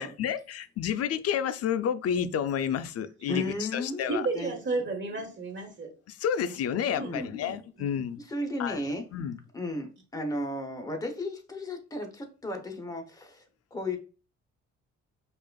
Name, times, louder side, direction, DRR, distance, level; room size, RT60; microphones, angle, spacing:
voice 1, 0.0-4.2 6.1-8.2 8.6-8.8 9.1-9.4, left 8 dB, 55° left, 0.4 m, -30 dB
voice 2, 3.3-4.5 7.0-7.3 8.2-9.0 9.5-13.4 13.7-14.0, left 1 dB, 10° left, 0.8 m, -34 dB
voice 3, 4.1-5.9 6.9-7.6, right 3 dB, 40° right, 1.4 m, -33 dB
4.7 x 2.4 x 2.3 m
cardioid pair, 90°, 30 cm